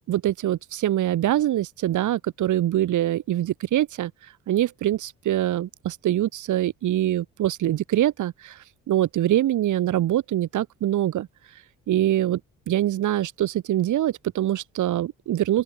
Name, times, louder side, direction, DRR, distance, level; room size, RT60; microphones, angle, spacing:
voice 1, 0.1-4.1 4.5-8.5 8.9-11.3 11.9-12.4 12.7-15.6, right 13 dB, 75° right, 4.1 m, -24 dB
open air
cardioid pair, 90°, 30 cm